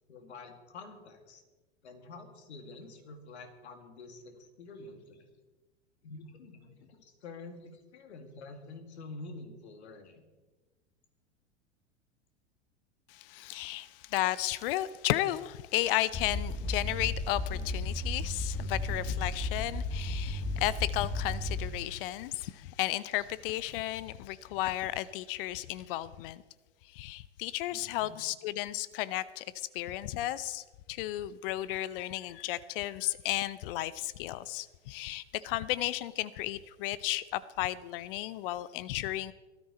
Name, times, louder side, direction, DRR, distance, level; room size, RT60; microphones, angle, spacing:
voice 1, 0.1-1.4 1.8-5.2 6.0-10.2 27.7-28.2, left 3 dB, 70° left, 2.5 m, -48 dB
voice 2, 13.1-26.4 26.9-39.3, left 15 dB, 50° left, 0.7 m, -34 dB
sound 1, 16.1-22.0, left 2 dB, 15° left, 2.1 m, -34 dB
18.0 x 13.0 x 4.3 m
figure-of-eight pair, 95°, 35 cm